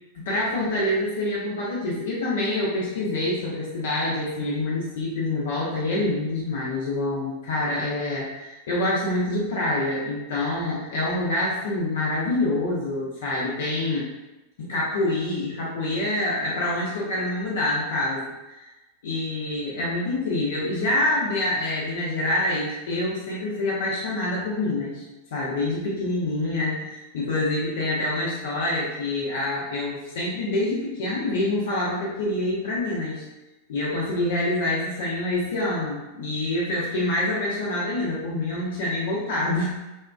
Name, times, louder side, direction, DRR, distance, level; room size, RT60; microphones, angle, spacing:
voice 1, 0.3-14.1 14.6-18.7 19.0-25.0 25.3-33.2 33.7-39.7, left 2 dB, 60° left, -6 dB, 0.5 m, -26 dB
2.8 x 2.2 x 2.2 m, 1.1 s
figure-of-eight pair, 90°, 0 cm